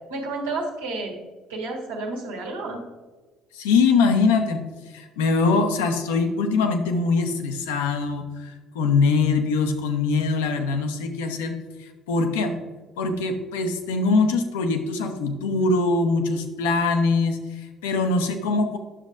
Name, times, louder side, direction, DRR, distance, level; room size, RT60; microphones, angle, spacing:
voice 1, 0.1-1.1 1.5-2.8, right 3 dB, 85° right, -2 dB, 1.5 m, -30 dB
voice 2, 3.5-12.5 13.0-18.8, left 4 dB, 80° left, 5 dB, 0.8 m, -23 dB
10.0 x 7.0 x 2.5 m, 1.4 s
hypercardioid pair, 55°, 0 cm